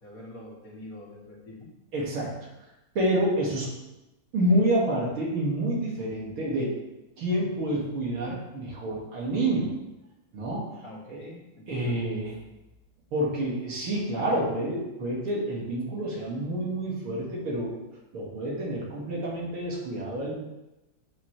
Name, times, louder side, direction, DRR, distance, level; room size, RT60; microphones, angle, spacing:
voice 1, 0.0-1.7 10.8-12.0, left 1 dB, 45° left, -5 dB, 2.3 m, -45 dB
voice 2, 1.9-2.3 2.9-3.7 4.3-6.7 7.2-9.7 10.3-10.7 11.1-11.2 11.7-12.4 13.1-17.7 18.1-20.3, right 1 dB, 90° right, -5 dB, 3.0 m, -28 dB
8.3 x 6.9 x 3.3 m, 0.96 s
omnidirectional pair, 2.2 m